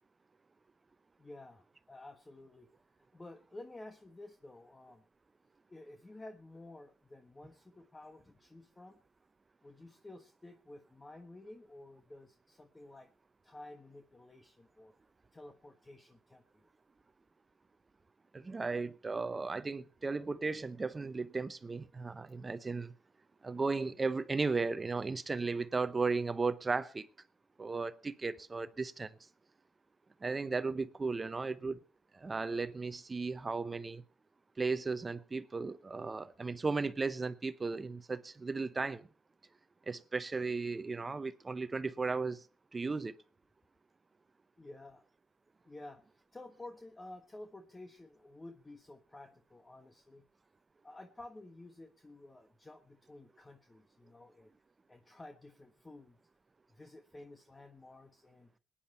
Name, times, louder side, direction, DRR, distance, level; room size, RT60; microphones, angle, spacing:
voice 1, 1.2-2.7 3.0-5.0 5.7-9.0 9.6-13.1 13.4-14.9 15.3-16.7 44.6-45.0 45.6-50.2 50.8-54.5 54.9-56.2 56.7-58.5, left 2 dB, 20° left, 1.3 m, -52 dB
voice 2, 18.3-22.9 23.4-27.1 27.6-29.2 30.2-31.8 32.1-34.0 34.6-39.1 39.9-42.4 42.7-43.2, right 4 dB, 25° right, 0.8 m, -35 dB
20.0 x 10.0 x 4.4 m
cardioid pair, 90°, 0 cm